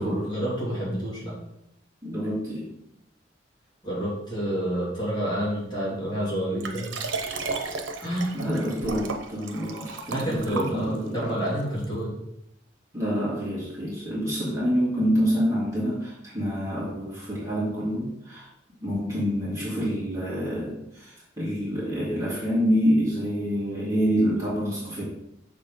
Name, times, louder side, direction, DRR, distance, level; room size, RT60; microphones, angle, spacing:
voice 1, 0.0-1.3 3.8-7.0 8.0-8.4 10.1-12.1, equal, 25° left, -7 dB, 2.8 m, -29 dB
voice 2, 2.0-2.7 8.3-11.4 12.9-18.5 18.8-25.0, equal, 15° right, -8 dB, 2.4 m, -27 dB
Liquid, 6.6-11.2 11.8-11.9, right 4 dB, 90° right, 0.8 m, -34 dB
6.3 x 4.2 x 5.2 m, 0.80 s
head